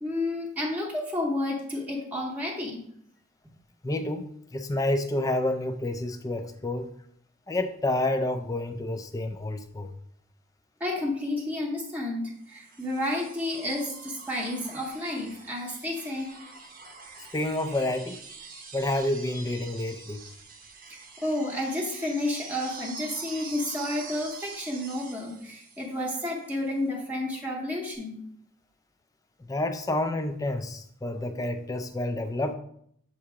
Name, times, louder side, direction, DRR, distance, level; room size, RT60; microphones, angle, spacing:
voice 1, 0.0-2.9 10.8-16.3 21.2-28.2, left 1 dB, 5° right, -2 dB, 0.8 m, -31 dB
voice 2, 3.8-4.2 4.5-6.9 7.5-9.9 17.3-18.2 18.7-20.2 29.5-32.5, left 1 dB, 15° left, 7 dB, 0.3 m, -29 dB
sound 1, 12.5-26.5 27.9-28.0, right 4 dB, 40° right, 0.7 m, -45 dB
7.4 x 2.9 x 4.8 m, 0.69 s
head